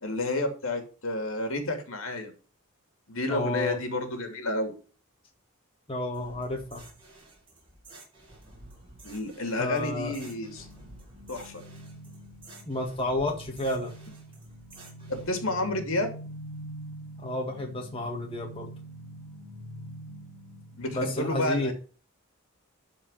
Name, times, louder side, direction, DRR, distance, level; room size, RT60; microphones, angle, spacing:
voice 1, 0.0-2.3 3.1-4.7 9.0-10.7 11.3-11.6 15.1-16.2 20.7-21.7, left 2 dB, 70° left, 5 dB, 2.8 m, -30 dB
voice 2, 3.3-3.8 5.9-6.8 9.6-10.2 12.7-13.9 17.2-18.7 20.9-21.7, left 1 dB, 25° left, 1 dB, 1.9 m, -31 dB
sound 1, 6.1-15.3, right 2 dB, 25° right, 4.9 m, -51 dB
sound 2, 9.7-21.0, right 1 dB, 50° right, 6.9 m, -45 dB
12.5 x 5.0 x 5.7 m, 0.36 s
head